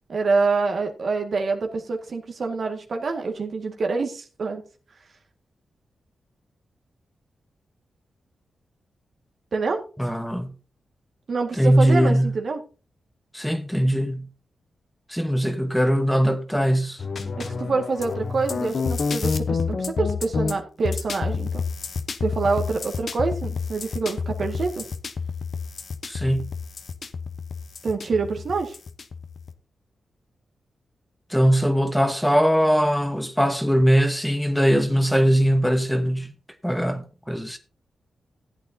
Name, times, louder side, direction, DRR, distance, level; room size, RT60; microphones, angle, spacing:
voice 1, 0.1-4.6 9.5-9.8 11.3-12.6 17.4-21.6 22.2-24.8 27.8-28.8, right 4 dB, 60° right, 1.9 m, -26 dB
voice 2, 10.0-10.5 11.6-12.3 13.3-14.3 15.1-17.0 26.1-26.5 31.3-36.3 36.6-37.6, equal, 5° left, 1.1 m, -21 dB
sound 1, 17.0-29.5, left 5 dB, 60° left, 1.0 m, -29 dB
14.5 x 8.4 x 2.8 m
cardioid pair, 60°, 0 cm